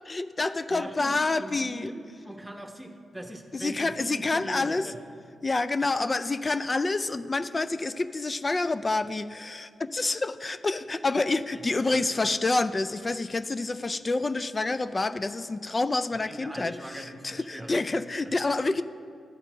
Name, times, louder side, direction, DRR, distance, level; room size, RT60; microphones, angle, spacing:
voice 1, 0.0-1.9 3.5-4.8 5.4-16.7 17.2-18.8, left 3 dB, 35° left, 12 dB, 0.3 m, -28 dB
voice 2, 0.7-5.0 11.5-12.2 16.3-17.8 18.2-18.4, right 1 dB, 10° right, 4 dB, 1.1 m, -41 dB
13.0 x 4.4 x 5.0 m, 2.3 s
supercardioid pair, 50°, 0 cm